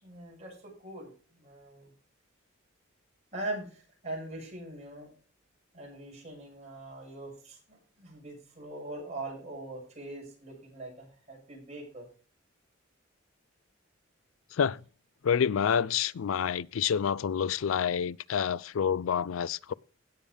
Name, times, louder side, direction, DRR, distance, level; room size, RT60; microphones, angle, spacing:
voice 1, 0.0-1.9 3.3-5.1 5.7-12.1, right 2 dB, 35° right, 6.5 m, -42 dB
voice 2, 15.2-19.7, left 7 dB, 75° left, 0.4 m, -28 dB
16.5 x 7.0 x 3.5 m
head